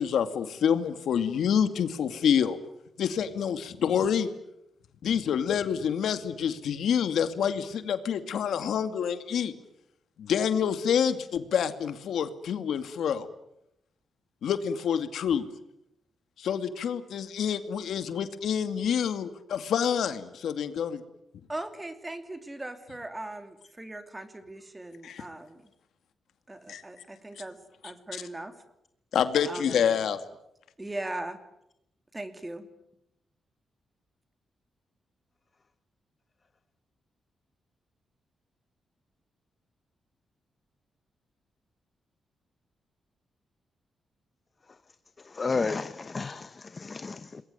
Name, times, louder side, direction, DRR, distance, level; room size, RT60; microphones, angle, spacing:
voice 1, 0.0-2.6 3.0-4.3 5.0-9.5 10.2-13.3 14.4-15.4 16.4-21.0 25.0-25.2 26.7-26.8 28.1-28.2 29.1-30.2, left 8 dB, 75° left, 2.3 m, -27 dB
voice 2, 21.5-25.6 26.5-27.6 27.8-28.6 29.5-30.0 30.8-31.4 32.1-32.7, right 2 dB, 15° right, 2.9 m, -39 dB
voice 3, 45.2-47.4, left 4 dB, 30° left, 1.0 m, -32 dB
28.0 x 22.0 x 9.7 m
wide cardioid pair, 130°, 0 cm